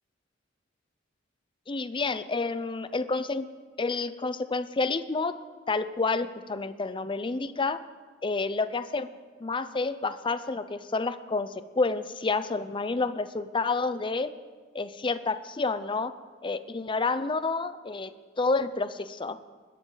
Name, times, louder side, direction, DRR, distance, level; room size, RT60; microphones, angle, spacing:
voice 1, 1.7-3.5 3.8-5.3 5.7-7.8 8.2-9.1 9.4-14.3 14.7-16.1 16.4-19.4, left 3 dB, 25° left, 12 dB, 0.6 m, -29 dB
21.0 x 12.5 x 3.9 m, 1.5 s
head